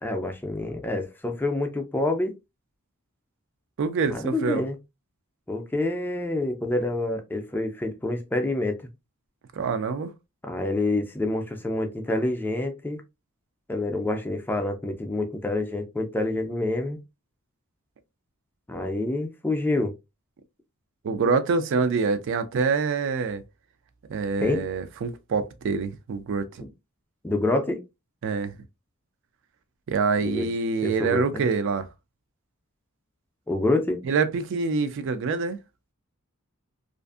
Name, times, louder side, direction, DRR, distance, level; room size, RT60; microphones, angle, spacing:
voice 1, 0.0-2.3 4.1-4.8 5.5-8.8 10.4-13.0 13.7-17.0 18.7-19.9 24.4-24.6 27.2-27.8 30.2-30.5 30.8-31.4 33.5-34.0, left 2 dB, 10° left, 0.4 m, -27 dB
voice 2, 3.8-4.6 9.5-10.1 21.0-23.4 24.1-26.6 28.2-28.5 29.9-31.9 34.1-35.6, right 4 dB, 60° right, 0.4 m, -26 dB
2.5 x 2.4 x 2.3 m
head